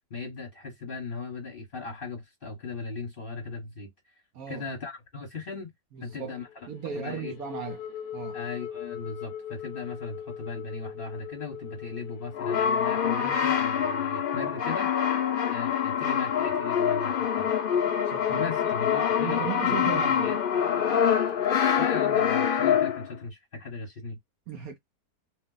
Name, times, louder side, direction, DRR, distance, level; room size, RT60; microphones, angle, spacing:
voice 1, 0.1-3.9 4.5-5.7 6.0-6.5 6.9-7.3 8.3-14.9 15.5-17.5 18.3-20.4 21.8-24.2, left 4 dB, 35° left, 1.2 m, -37 dB
voice 2, 4.3-4.7 5.9-6.4 6.7-7.8 8.1-8.4 18.0-18.7 19.2-20.3 24.5-24.8, right 8 dB, 65° right, 1.0 m, -36 dB
sound 1, 6.1-19.8, left 8 dB, 65° left, 0.8 m, -43 dB
Brass instrument, 12.3-23.2, left 8 dB, 80° left, 0.4 m, -25 dB
2.8 x 2.1 x 3.8 m
omnidirectional pair, 1.8 m